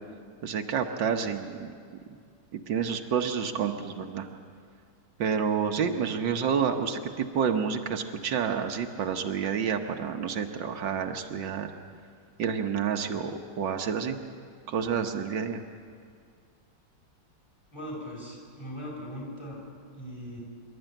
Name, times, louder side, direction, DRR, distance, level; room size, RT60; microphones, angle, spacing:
voice 1, 0.4-1.7 2.5-4.3 5.2-11.7 12.4-14.2 14.7-15.6, right 7 dB, 85° right, 5 dB, 1.8 m, -29 dB
voice 2, 17.7-19.6 19.9-20.4, equal, 15° left, -2 dB, 6.2 m, -39 dB
25.5 x 12.5 x 9.0 m, 2.2 s
omnidirectional pair, 1.9 m